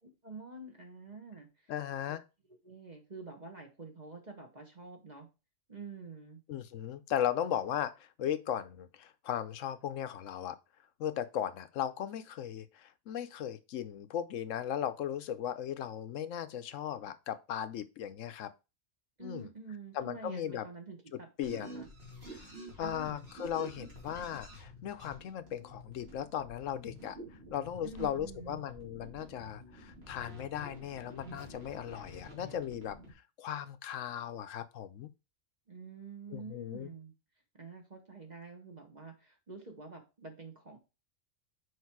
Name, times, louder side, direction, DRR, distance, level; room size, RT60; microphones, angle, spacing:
voice 1, 0.2-1.7 2.6-5.3 5.7-6.4 19.2-21.9 22.8-23.2 27.8-28.7 35.7-37.1 37.5-40.8, right 4 dB, 35° right, 1.4 m, -47 dB
voice 2, 1.7-2.2 6.5-10.6 11.0-18.5 19.2-19.5 19.9-20.7 21.4-21.8 22.3-22.4 22.8-27.2 27.5-33.0 33.4-35.1 36.3-36.9, left 10 dB, 75° left, 1.0 m, -37 dB
sound 1, 21.4-33.1, equal, 50° right, 2.9 m, -49 dB
6.6 x 4.9 x 4.7 m
omnidirectional pair, 1.4 m